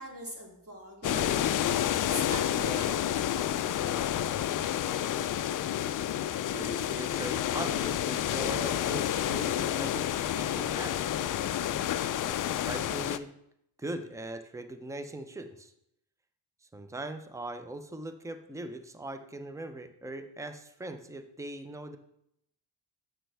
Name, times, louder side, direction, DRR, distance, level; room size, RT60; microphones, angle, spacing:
voice 1, 0.0-3.1, right 1 dB, 30° right, -3 dB, 2.7 m, -41 dB
sound 1, 1.0-13.2, left 11 dB, 45° left, 0.4 m, -30 dB
voice 2, 6.5-11.2 12.2-13.3 13.8-15.7 16.7-22.0, right 1 dB, 5° right, 9 dB, 0.7 m, -40 dB
7.7 x 6.0 x 3.4 m, 0.76 s
supercardioid pair, 55°, 44 cm